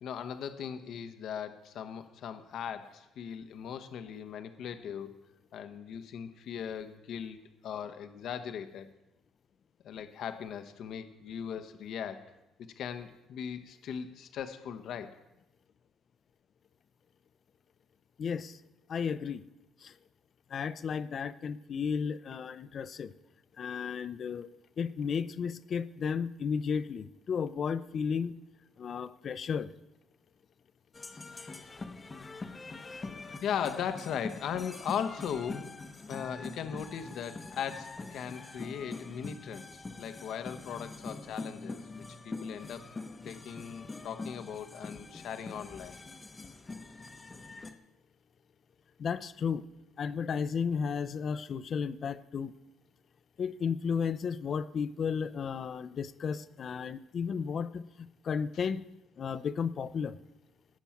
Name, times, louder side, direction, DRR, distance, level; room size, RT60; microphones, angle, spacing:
voice 1, 0.0-5.1 5.5-8.9 9.8-12.3 12.8-15.2 33.4-35.7 36.1-41.8 42.2-42.9 43.2-45.9, left 8 dB, 60° left, 9 dB, 1.0 m, -38 dB
voice 2, 18.2-18.6 18.9-19.4 19.8-19.9 20.5-23.1 23.6-24.5 24.8-28.3 28.8-29.7 33.1-33.2 49.0-49.6 50.0-52.5 53.4-58.8 59.2-60.2, left 6 dB, 45° left, 14 dB, 0.6 m, -33 dB
sound 1, 30.9-47.7, left 3 dB, 20° left, 0.9 m, -44 dB
17.5 x 6.2 x 5.8 m, 0.95 s
cardioid pair, 120°, 0 cm